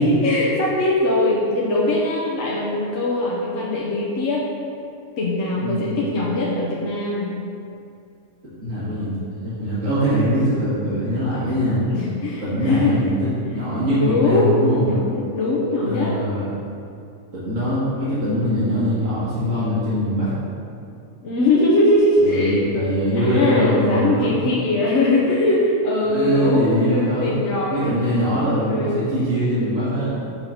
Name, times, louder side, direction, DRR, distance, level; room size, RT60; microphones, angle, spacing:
voice 1, 0.0-4.4 5.2-7.3 11.9-12.9 14.0-16.2 21.2-22.8 23.2-29.0, left 2 dB, 60° left, -5 dB, 1.2 m, -21 dB
voice 2, 5.6-6.2 8.6-9.1 9.4-11.8 12.4-14.9 15.8-16.5 17.3-20.3 22.2-24.4 26.0-27.3 27.7-30.2, equal, 65° right, -11 dB, 2.1 m, -22 dB
5.7 x 3.8 x 5.7 m, 2.5 s
omnidirectional pair, 1.4 m